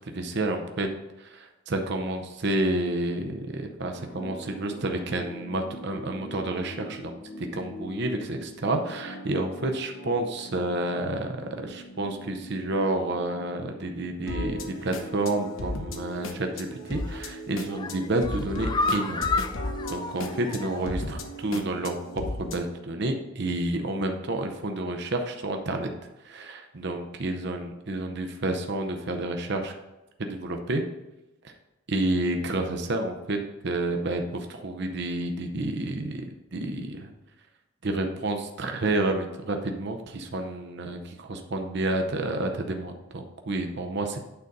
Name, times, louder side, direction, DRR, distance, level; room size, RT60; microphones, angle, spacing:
voice 1, 0.1-0.9 1.2-19.3 19.9-25.9 26.2-29.7 30.2-30.8 31.4-31.5 31.9-33.4 33.6-37.1 37.8-44.2, right 2 dB, 55° right, 4 dB, 0.7 m, -30 dB
sound 1, 3.9-22.6, left 1 dB, 70° left, 0.9 m, -38 dB
sound 2, 16.9-17.3 17.6-21.0 21.4-21.5 21.8-21.9, left 3 dB, 20° left, 0.4 m, -31 dB
9.0 x 4.0 x 5.2 m, 1.0 s
head